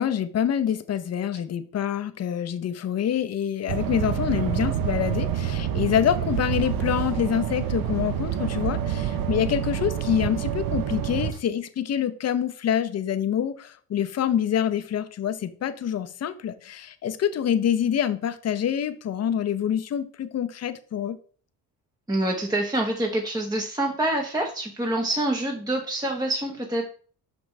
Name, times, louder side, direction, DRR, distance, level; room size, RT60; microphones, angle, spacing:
voice 1, 0.0-21.2, left 9 dB, 40° left, 11 dB, 0.6 m, -26 dB
sound 1, 3.7-11.3, right 10 dB, 55° right, 0.8 m, -27 dB
voice 2, 22.1-26.9, right 1 dB, 10° right, 0 dB, 0.8 m, -26 dB
6.0 x 5.2 x 3.2 m, 0.43 s
cardioid pair, 105°, 41 cm